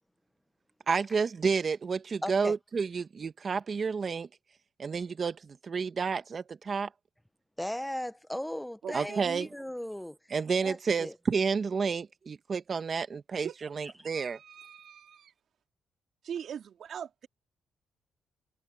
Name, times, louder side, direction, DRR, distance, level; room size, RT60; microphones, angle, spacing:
voice 1, 0.9-4.3 4.8-6.9 8.9-9.5 10.3-14.4, right 5 dB, 40° right, 1.4 m, -30 dB
voice 2, 2.2-2.5 7.6-10.2 10.6-11.2, left 1 dB, 5° left, 0.9 m, -37 dB
voice 3, 8.8-9.5 13.4-15.3 16.2-17.3, right 8 dB, 60° right, 3.2 m, -42 dB
cardioid pair, 90°, 0 cm